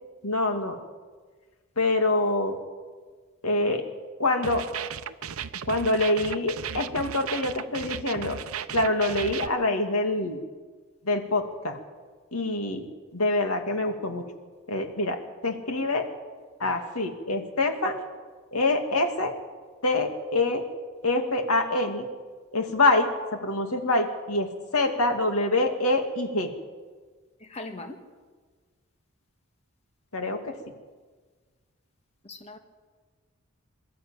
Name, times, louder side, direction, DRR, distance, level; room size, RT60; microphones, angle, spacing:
voice 1, 0.2-0.8 1.8-2.6 3.4-3.9 4.2-4.6 5.7-8.4 8.7-10.4 11.0-11.8 12.3-12.9 13.1-14.2 14.7-15.2 15.4-16.1 16.6-18.0 18.5-19.3 19.8-20.6 21.0-22.1 22.5-26.5 30.1-30.6, left 2 dB, 80° left, 5 dB, 2.3 m, -25 dB
sound 1, 4.4-9.5, right 8 dB, 75° right, 0.7 m, -35 dB
voice 2, 27.4-28.0 32.2-32.6, left 2 dB, 30° left, 5 dB, 1.5 m, -40 dB
22.5 x 13.0 x 8.9 m, 1.5 s
head